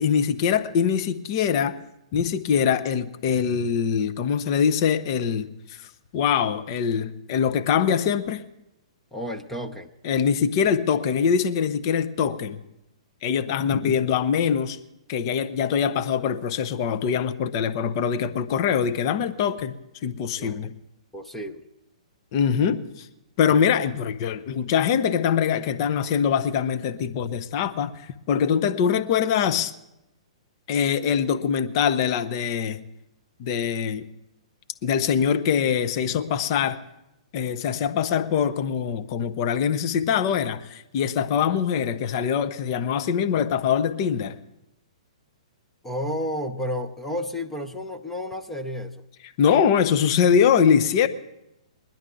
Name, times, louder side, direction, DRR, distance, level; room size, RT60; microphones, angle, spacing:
voice 1, 0.0-1.8 2.1-5.9 6.1-8.4 10.0-12.6 13.2-14.8 15.1-19.7 20.0-20.7 22.3-23.1 23.4-29.7 30.7-32.8 33.4-34.1 34.8-36.8 37.3-44.4 49.4-51.1, left 7 dB, 40° left, 0.8 m, -23 dB
voice 2, 9.1-9.9 20.4-20.7 21.1-21.7 45.8-49.0, equal, 5° left, 0.8 m, -31 dB
22.0 x 10.5 x 3.9 m
figure-of-eight pair, 115°, 3 cm